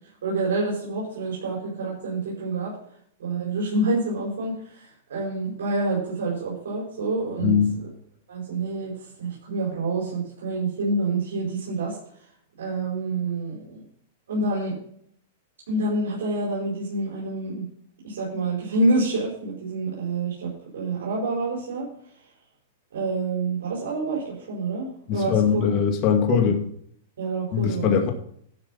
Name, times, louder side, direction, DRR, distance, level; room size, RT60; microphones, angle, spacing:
voice 1, 0.2-2.7 3.2-7.6 8.3-12.0 12.6-13.8 14.3-14.7 15.7-17.6 18.0-21.9 22.9-25.6 26.3-26.5 27.2-28.0, right 2 dB, 85° right, -4 dB, 5.0 m, -27 dB
voice 2, 7.4-7.8 25.1-26.6 27.5-28.1, left 8 dB, 35° left, 3 dB, 2.0 m, -21 dB
12.0 x 6.3 x 5.6 m, 0.65 s
hypercardioid pair, 145°, 0 cm